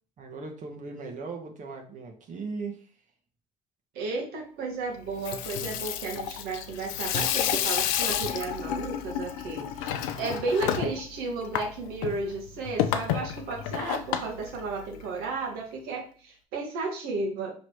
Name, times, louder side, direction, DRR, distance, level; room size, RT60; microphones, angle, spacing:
voice 1, 0.2-2.9, right 4 dB, 50° right, 2 dB, 1.0 m, -38 dB
voice 2, 3.9-17.5, right 3 dB, 75° right, 1 dB, 1.2 m, -33 dB
Water tap faucet / Sink (filling or washing), 5.1-15.3, left 10 dB, 85° left, 0.4 m, -31 dB
4.5 x 3.1 x 3.1 m, 0.41 s
hypercardioid pair, 60°, 16 cm